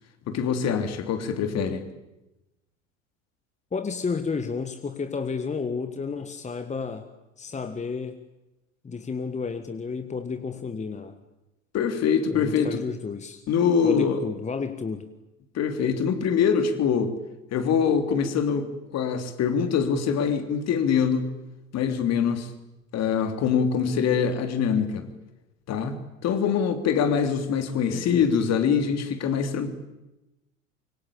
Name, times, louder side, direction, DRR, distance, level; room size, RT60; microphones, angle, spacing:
voice 1, 0.3-1.8 11.7-12.8 13.5-14.2 15.5-17.1 17.5-21.3 21.7-22.5 22.9-25.1 25.7-29.7, left 7 dB, 45° left, 8 dB, 3.4 m, -24 dB
voice 2, 3.7-7.1 7.4-8.2 8.8-11.2 12.3-13.4 13.8-15.1 27.9-28.3, left 5 dB, 20° left, 10 dB, 1.7 m, -31 dB
26.0 x 24.0 x 8.7 m, 0.96 s
figure-of-eight pair, 70°, 37 cm